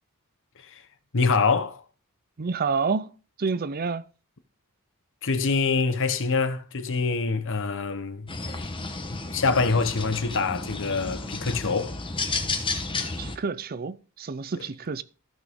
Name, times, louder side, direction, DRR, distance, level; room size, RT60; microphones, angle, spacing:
voice 1, 0.6-0.9 1.1-1.8 5.2-8.7 9.1-12.0 14.5-14.7, left 4 dB, 60° left, 1.0 m, -25 dB
voice 2, 2.4-3.1 3.4-4.0 13.2-15.0, right 4 dB, 45° right, 0.5 m, -28 dB
sound 1, 8.3-13.3, left 3 dB, 25° left, 1.1 m, -32 dB
14.5 x 6.3 x 3.6 m
head